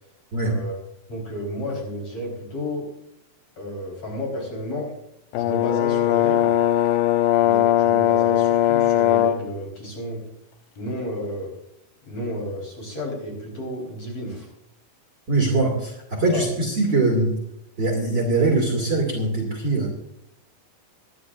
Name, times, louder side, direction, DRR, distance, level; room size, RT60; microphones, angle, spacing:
voice 1, 0.4-0.8 1.1-2.9 3.6-4.9 5.3-6.6 7.4-10.2 10.8-11.5 12.1-14.5 16.3-16.5, equal, 40° left, -1 dB, 5.2 m, -32 dB
Brass instrument, 5.3-9.5, left 12 dB, 90° left, 2.5 m, -19 dB
voice 2, 15.3-17.4 17.8-19.9, right 2 dB, 35° right, -1 dB, 2.6 m, -22 dB
25.0 x 11.0 x 2.6 m, 0.77 s
omnidirectional pair, 4.1 m